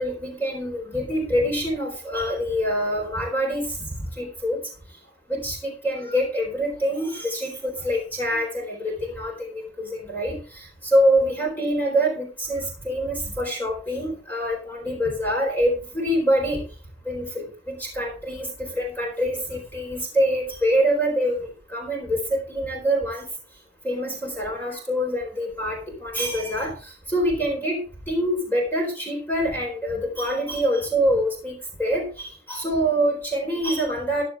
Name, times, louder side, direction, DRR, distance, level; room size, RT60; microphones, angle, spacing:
voice 1, 0.0-4.6 5.3-16.6 17.0-23.2 23.8-27.8 28.1-34.2, equal, 10° left, 0 dB, 4.1 m, -25 dB
14.5 x 10.0 x 3.5 m, 0.36 s
head